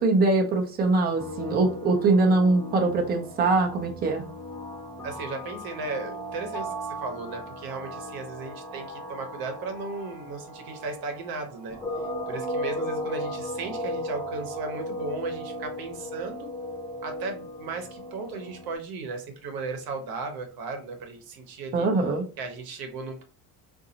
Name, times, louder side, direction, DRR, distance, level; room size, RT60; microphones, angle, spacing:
voice 1, 0.0-4.2 21.7-22.2, right 3 dB, 25° right, 3 dB, 0.5 m, -22 dB
sound 1, 1.2-18.7, equal, 5° left, 0.8 m, -36 dB
voice 2, 5.0-11.8 12.3-16.5 17.0-21.9 22.4-23.2, right 3 dB, 60° right, 5 dB, 0.9 m, -36 dB
3.8 x 2.6 x 2.7 m, 0.37 s
cardioid pair, 165°, 42 cm